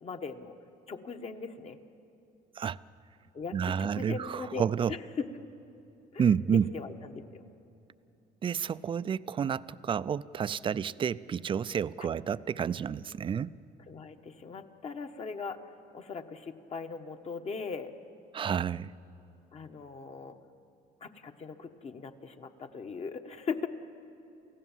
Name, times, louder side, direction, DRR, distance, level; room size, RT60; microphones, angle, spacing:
voice 1, 0.0-0.5 0.9-1.8 3.3-5.3 6.1-7.4 12.0-12.1 13.9-15.6 15.9-17.9 19.5-20.4 21.0-23.7, left 5 dB, 40° left, 7 dB, 1.3 m, -39 dB
voice 2, 3.5-4.9 6.2-6.7 8.4-13.5 18.3-18.9, right 7 dB, 30° right, 17 dB, 0.4 m, -30 dB
28.5 x 15.5 x 7.4 m, 2.9 s
cardioid pair, 110°, 17 cm